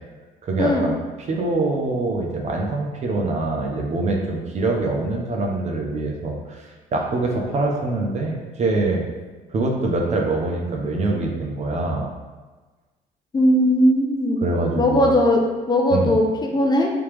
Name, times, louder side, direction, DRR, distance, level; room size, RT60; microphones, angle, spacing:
voice 1, 0.4-0.9 1.2-6.6 6.9-9.0 9.5-12.1 14.4-15.1 15.9-16.2, right 2 dB, 40° right, 0 dB, 0.7 m, -24 dB
voice 2, 13.3-14.4 14.8-16.9, left 1 dB, 25° left, 1 dB, 0.4 m, -18 dB
3.4 x 2.9 x 3.2 m, 1.3 s
cardioid pair, 110°, 17 cm